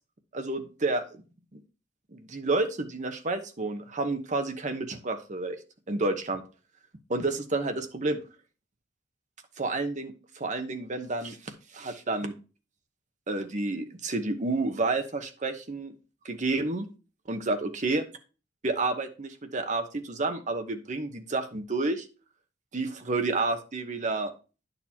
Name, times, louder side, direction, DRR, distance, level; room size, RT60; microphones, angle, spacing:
voice 1, 0.3-1.1 1.5-1.6 2.1-5.6 5.9-6.4 7.1-8.2 9.6-12.3 13.3-15.9 16.2-16.9 17.3-18.0 18.6-22.0 22.7-24.3, right 2 dB, 40° right, 7 dB, 0.9 m, -30 dB
9.9 x 6.7 x 2.8 m, 0.34 s
head